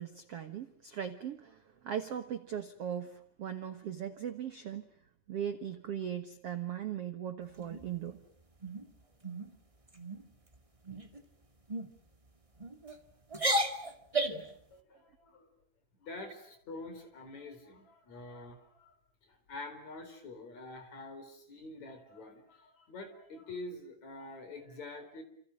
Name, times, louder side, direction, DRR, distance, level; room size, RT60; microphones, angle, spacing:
voice 1, 0.0-4.8 5.3-8.2, right 9 dB, 75° right, 9 dB, 1.4 m, -39 dB
sound 1, 7.6-8.2 8.6-8.9 9.2-9.5 9.9-10.2 10.8-11.2 11.7-11.9 12.6-13.0 13.3-14.5, right 1 dB, 40° right, 0.4 m, -34 dB
voice 2, 14.7-15.5 16.0-19.0 19.2-25.2, left 2 dB, 45° left, 7 dB, 5.4 m, -46 dB
29.5 x 28.0 x 6.5 m, 0.66 s
omnidirectional pair, 4.8 m